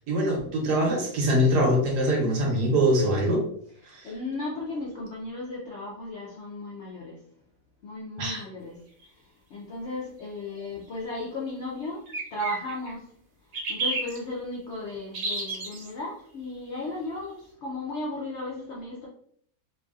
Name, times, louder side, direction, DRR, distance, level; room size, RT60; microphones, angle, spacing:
voice 1, 0.1-3.4 3.9-4.1 8.2-8.4, equal, 80° right, -1 dB, 1.4 m, -23 dB
voice 2, 3.8-7.2 7.8-8.8 9.5-13.1 13.7-19.1, left 2 dB, 65° left, -4 dB, 0.7 m, -35 dB
sound 1, 9.0-9.1 12.1-12.9 13.5-14.2 15.1-15.9, right 3 dB, 65° right, 1.2 m, -30 dB
3.1 x 2.5 x 2.3 m, 0.63 s
omnidirectional pair, 1.8 m